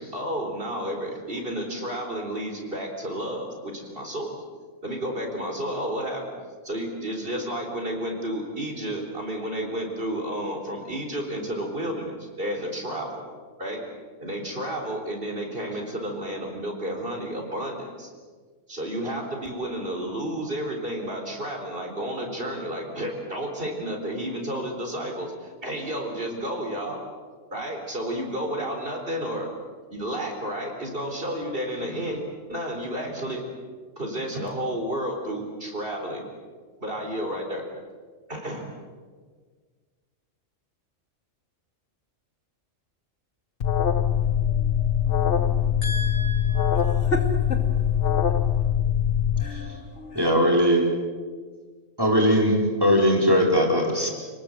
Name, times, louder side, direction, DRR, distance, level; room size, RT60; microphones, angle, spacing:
voice 1, 0.0-4.3 4.8-6.3 6.6-13.2 13.6-13.8 14.2-18.1 18.7-27.0 27.5-29.5 29.9-32.2 32.5-33.5 34.0-36.3 36.8-37.6 38.3-38.7, right 1 dB, 45° right, 4.4 m, -31 dB
Alarm, 43.6-49.4, left 9 dB, 50° left, 1.0 m, -23 dB
voice 2, 44.2-48.7 49.4-50.3, equal, 65° left, 2.8 m, -35 dB
voice 3, 50.1-50.9 52.0-54.1, equal, 15° right, 4.6 m, -20 dB
29.0 x 20.0 x 7.9 m
omnidirectional pair, 1.3 m